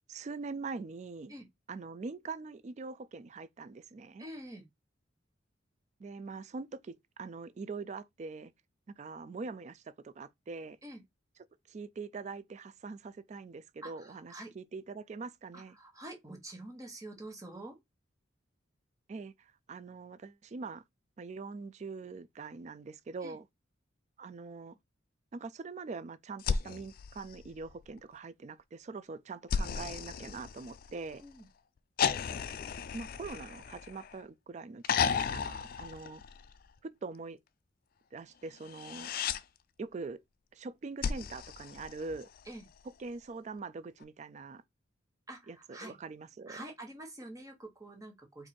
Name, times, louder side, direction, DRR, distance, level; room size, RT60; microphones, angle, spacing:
voice 1, 0.1-1.3 1.7-4.2 6.0-8.5 9.0-10.8 11.7-15.8 19.1-20.8 21.2-23.4 24.2-24.8 25.3-31.2 32.9-36.2 36.8-37.4 38.1-39.1 39.8-40.2 40.5-42.3 43.0-44.6 45.5-45.6 45.8-46.7, right 4 dB, 35° right, 0.3 m, -43 dB
voice 2, 4.2-4.7 10.8-11.0 13.8-14.5 15.5-17.8 23.2-23.4 31.2-31.5 42.4-42.7 45.3-46.0 46.5-48.5, right 1 dB, 15° right, 1.2 m, -47 dB
sound 1, 26.4-28.0 29.5-31.2 32.0-34.3 34.8-36.7 38.6-39.4 41.0-42.5 44.0-44.1, left 6 dB, 45° left, 0.3 m, -35 dB
4.5 x 2.5 x 4.3 m
head